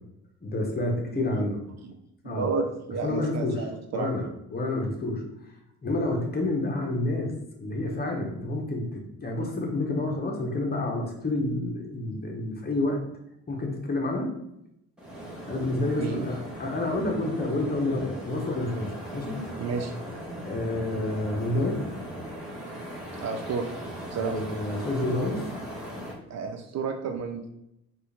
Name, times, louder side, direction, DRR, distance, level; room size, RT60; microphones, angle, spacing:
voice 1, 0.4-1.6 2.2-2.5 3.0-3.7 3.9-5.2 5.8-7.3 7.6-13.0 13.5-14.3 15.5-19.5 20.4-21.8 24.2-25.5, left 2 dB, 30° left, 1 dB, 1.1 m, -29 dB
voice 2, 2.2-4.1 16.0-16.2 19.6-19.9 23.2-23.6 24.1-24.3 26.3-27.5, right 5 dB, 60° right, 5 dB, 0.6 m, -31 dB
sound 1, 15.0-26.1, equal, 5° right, 1.3 m, -38 dB
4.4 x 2.6 x 3.4 m, 0.82 s
cardioid pair, 90°, 30 cm